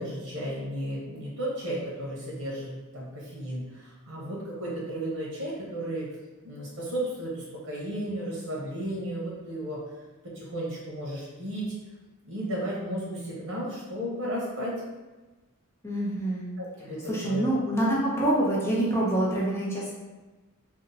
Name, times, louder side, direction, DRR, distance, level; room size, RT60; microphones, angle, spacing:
voice 1, 0.0-6.1 6.4-9.8 10.2-11.7 12.3-14.8 16.6-17.5, right 1 dB, 90° right, -5 dB, 0.9 m, -34 dB
voice 2, 15.8-16.5 17.1-19.9, right 1 dB, 10° left, -6 dB, 0.7 m, -26 dB
2.7 x 2.1 x 3.9 m, 1.2 s
head